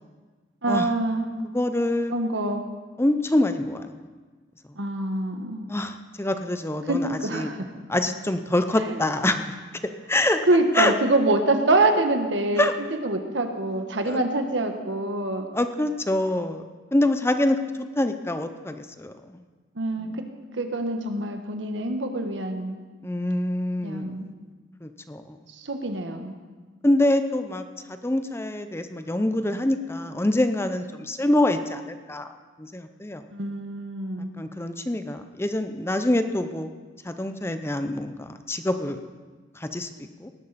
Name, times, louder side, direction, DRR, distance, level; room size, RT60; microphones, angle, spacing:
voice 1, 0.6-1.3 2.1-2.7 4.7-5.7 6.9-7.7 8.8-9.0 10.4-12.7 13.0-15.5 19.7-20.3 20.5-22.8 23.8-24.3 25.5-26.4 33.3-34.3, right 2 dB, 80° right, 6 dB, 1.4 m, -25 dB
voice 2, 1.5-2.1 3.0-4.0 5.7-7.5 7.9-9.5 9.8-10.4 10.8-10.9 12.6-12.7 14.0-14.2 15.5-16.6 16.9-17.6 18.0-19.4 20.0-20.2 23.0-24.3 24.8-25.4 26.8-32.3 32.6-33.2 34.4-36.7 37.0-39.0 39.6-40.3, left 1 dB, 15° left, 8 dB, 0.6 m, -25 dB
18.5 x 12.0 x 4.2 m, 1.4 s
head